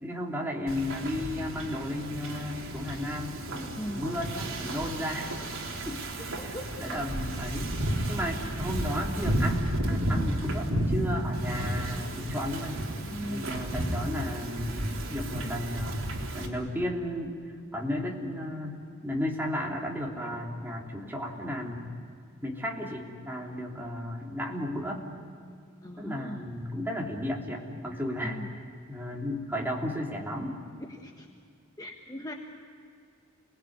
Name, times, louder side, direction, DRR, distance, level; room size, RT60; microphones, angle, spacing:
voice 1, 0.0-5.3 5.9-6.0 6.2-7.7 8.1-12.8 13.3-16.0 16.3-17.3 17.7-21.8 22.4-25.0 26.0-28.4 28.9-30.5, left 1 dB, 10° right, -2 dB, 3.4 m, -34 dB
Wind / Ocean, 0.7-16.5, right 1 dB, 65° right, 3.8 m, -32 dB
voice 2, 3.8-4.1 6.4-6.7 13.1-13.5 25.8-26.5 28.2-28.5 30.9-31.3 31.8-32.3, equal, 15° left, 2 dB, 1.4 m, -39 dB
29.0 x 20.0 x 9.6 m, 2.3 s
head